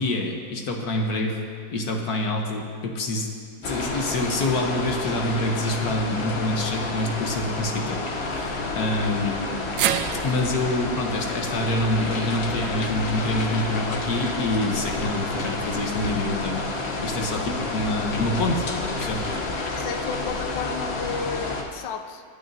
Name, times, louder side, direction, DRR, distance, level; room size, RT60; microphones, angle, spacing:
voice 1, 0.0-1.4 1.7-3.3 3.6-9.5 10.2-16.6 17.0-19.2, left 1 dB, 60° left, 2 dB, 1.5 m, -26 dB
sound 1, 3.6-21.6, left 3 dB, 40° left, 1.1 m, -30 dB
sound 2, 9.8-14.0 14.4-14.5 15.7-15.8, right 10 dB, 75° right, 1.2 m, -32 dB
voice 2, 19.7-22.2, left 6 dB, 80° left, 8 dB, 1.4 m, -32 dB
24.0 x 9.1 x 2.7 m, 2.2 s
omnidirectional pair, 2.0 m